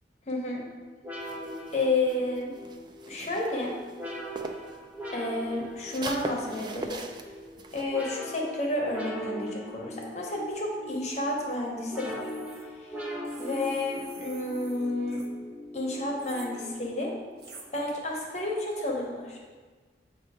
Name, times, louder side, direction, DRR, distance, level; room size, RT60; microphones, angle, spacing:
voice 1, 0.3-0.6 1.7-2.5 3.1-3.8 5.1-7.0 7.7-12.3 12.8-15.2 15.7-17.2 17.7-19.4, left 2 dB, 40° left, -2 dB, 0.9 m, -31 dB
sound 1, 1.0-17.2, equal, 10° right, 0.7 m, -41 dB
sound 2, 1.2-4.8 5.1-7.8, right 3 dB, 25° right, 0.3 m, -40 dB
sound 3, 12.0-12.6 13.2-15.3 16.2-16.5 17.4-17.7, right 4 dB, 60° right, 0.8 m, -49 dB
8.0 x 2.7 x 4.9 m, 1.5 s
head